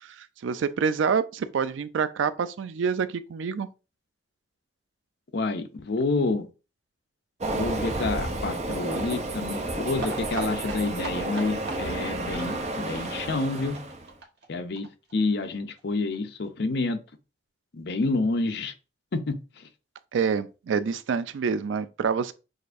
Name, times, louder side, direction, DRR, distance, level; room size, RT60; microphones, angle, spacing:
voice 1, 0.0-3.7 20.1-22.3, right 6 dB, 85° right, 0.4 m, -27 dB
voice 2, 5.3-6.5 7.5-13.8 14.5-17.0 17.7-18.7 19.1-19.7, left 3 dB, 60° left, 0.6 m, -28 dB
Train, 7.4-14.1, right 2 dB, 35° right, 0.5 m, -31 dB
sound 1, 10.0-15.5 15.8-15.9 16.1-16.2 16.4-16.5, right 4 dB, 60° right, 1.2 m, -40 dB
6.4 x 2.5 x 2.5 m
head